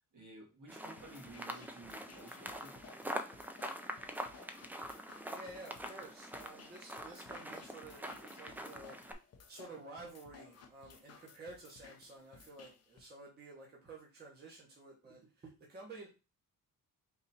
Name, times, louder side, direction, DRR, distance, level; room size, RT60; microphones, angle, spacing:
voice 1, 0.1-3.0, right 2 dB, 55° right, -1 dB, 1.9 m, -54 dB
sound 1, 0.7-9.1, equal, 5° right, 0.3 m, -45 dB
sound 2, 1.0-13.0, left 5 dB, 45° left, 0.8 m, -59 dB
voice 2, 5.2-9.0 9.5-16.1, right 2 dB, 25° right, -3 dB, 1.1 m, -52 dB
3.9 x 2.7 x 4.2 m, 0.30 s
cardioid pair, 145°, 35 cm